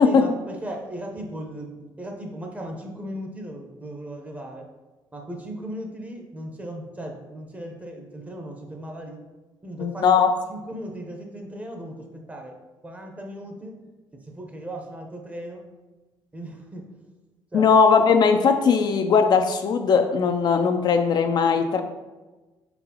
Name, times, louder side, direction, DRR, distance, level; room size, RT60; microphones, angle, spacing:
voice 1, 0.0-4.7 5.1-9.2 9.6-10.1 10.5-12.6 12.8-13.7 14.1-15.6 16.3-17.0 17.5-17.7, right 1 dB, 15° right, 2 dB, 0.8 m, -37 dB
voice 2, 9.8-10.3 17.5-21.8, left 5 dB, 50° left, 6 dB, 0.4 m, -19 dB
4.6 x 4.0 x 2.8 m, 1.2 s
cardioid pair, 100°, 9 cm